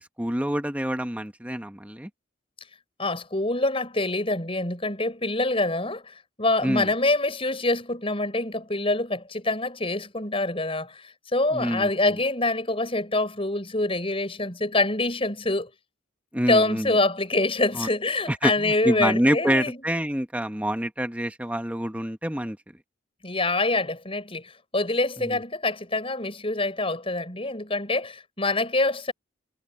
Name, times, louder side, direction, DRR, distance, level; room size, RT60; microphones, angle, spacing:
voice 1, 0.0-2.1 6.6-6.9 11.5-12.2 16.3-17.0 17.7-17.9 18.3-22.6 25.2-25.4, equal, 5° right, 1.4 m, -27 dB
voice 2, 3.0-15.7 16.5-19.8 23.2-29.1, left 2 dB, 30° left, 6.9 m, -25 dB
head